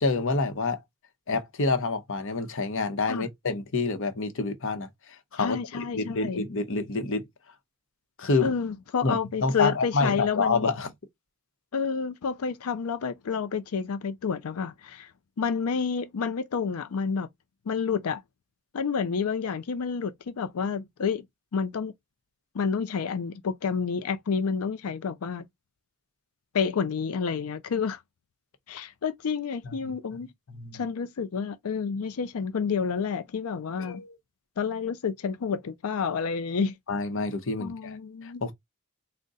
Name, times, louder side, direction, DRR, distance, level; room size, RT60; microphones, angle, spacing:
voice 1, 0.0-0.8 1.3-4.9 5.3-7.2 8.2-8.5 9.0-10.9 29.6-29.9 30.5-30.8 33.8-34.2 36.9-38.0 38.2-38.5, left 3 dB, 65° left, 0.9 m, -28 dB
voice 2, 5.4-6.4 8.4-10.7 11.7-15.1 15.4-17.3 17.7-18.2 18.7-21.2 21.5-21.9 22.5-25.5 26.5-28.0 28.7-30.3 30.7-34.0 34.6-36.7 37.6-38.4, left 6 dB, 85° left, 0.5 m, -29 dB
3.6 x 2.2 x 3.9 m
head